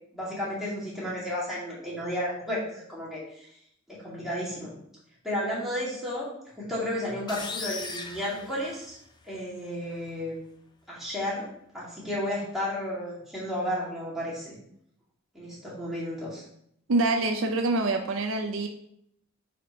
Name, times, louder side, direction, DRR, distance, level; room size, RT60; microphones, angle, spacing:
voice 1, 0.1-3.5 3.9-4.7 5.2-6.3 6.6-9.0 9.3-10.3 10.9-11.5 11.7-14.5 15.3-16.4, left 1 dB, ahead, -8 dB, 2.3 m, -32 dB
sound 1, 7.3-9.2, left 4 dB, 20° left, 0.6 m, -38 dB
voice 2, 16.9-18.7, right 2 dB, 65° right, 5 dB, 0.5 m, -25 dB
5.1 x 4.3 x 5.0 m, 0.72 s
head